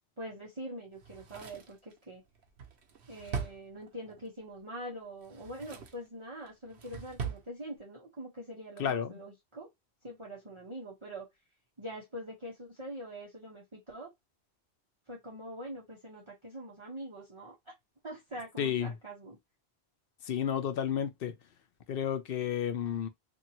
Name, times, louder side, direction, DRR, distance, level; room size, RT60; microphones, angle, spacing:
voice 1, 0.2-2.2 3.1-9.7 10.0-11.3 11.8-14.1 15.1-17.5 18.0-19.4, right 1 dB, 30° right, 1.0 m, -44 dB
Drawer open or close, 1.0-4.3 5.1-6.1 6.5-7.5 7.8-7.9, right 6 dB, 80° right, 1.0 m, -41 dB
voice 2, 8.8-9.1 18.6-18.9 20.3-21.3 21.9-23.1, left 8 dB, 65° left, 0.7 m, -31 dB
2.7 x 2.7 x 2.8 m
omnidirectional pair, 1.1 m